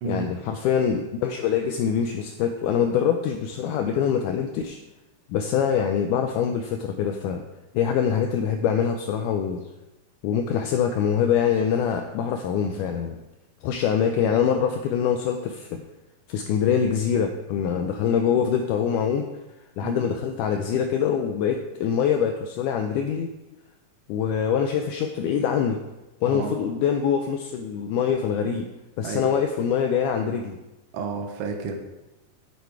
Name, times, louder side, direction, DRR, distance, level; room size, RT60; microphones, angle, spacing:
voice 1, 0.0-4.8 5.3-7.4 7.7-9.6 10.2-13.2 13.6-15.9 16.3-19.3 19.8-23.3 24.1-25.8 26.2-28.7 29.0-30.6, left 7 dB, 80° left, 5 dB, 1.9 m, -24 dB
voice 2, 30.9-31.7, right 4 dB, 65° right, 3 dB, 1.5 m, -30 dB
8.7 x 8.0 x 4.6 m, 1.0 s
omnidirectional pair, 4.1 m